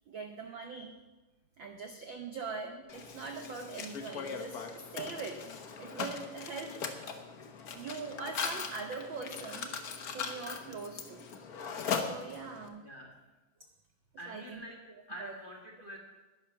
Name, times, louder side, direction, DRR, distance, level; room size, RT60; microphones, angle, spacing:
voice 1, 0.1-0.9 1.6-5.4 5.8-6.7 7.7-9.7 10.1-11.2 12.0-12.8 14.3-14.6 15.2-15.4, right 4 dB, 70° right, 4 dB, 1.1 m, -42 dB
Mechanisms, 2.9-12.7, left 6 dB, 85° left, 0.8 m, -39 dB
voice 2, 12.8-13.2 14.2-14.8 15.1-16.0, equal, 25° left, 1 dB, 1.4 m, -46 dB
11.5 x 10.5 x 5.8 m, 1.1 s
omnidirectional pair, 3.4 m